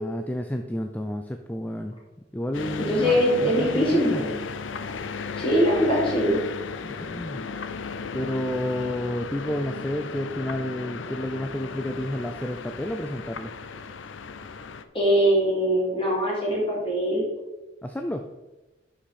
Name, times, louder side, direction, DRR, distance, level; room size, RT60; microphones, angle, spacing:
voice 1, 0.0-1.9 2.3-4.2 6.8-7.4 8.1-13.5 17.8-18.3, left 1 dB, 10° left, 6 dB, 0.4 m, -30 dB
sound 1, 2.5-14.8, left 5 dB, 90° left, 0.6 m, -35 dB
voice 2, 2.8-4.3 5.4-6.4 14.9-17.3, equal, 30° left, -4 dB, 3.2 m, -22 dB
11.5 x 5.1 x 4.3 m, 1.1 s
head